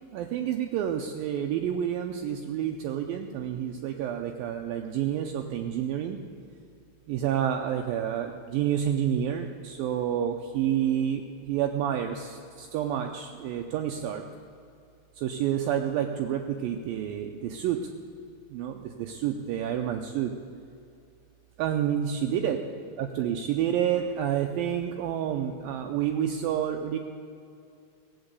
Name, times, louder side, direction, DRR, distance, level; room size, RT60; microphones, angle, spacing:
voice 1, 0.1-6.2 7.1-14.3 15.2-17.8 18.5-20.3 21.6-22.6 22.9-27.0, right 10 dB, 80° right, 4 dB, 2.2 m, -29 dB
16.5 x 8.0 x 8.1 m, 2.5 s
omnidirectional pair, 4.6 m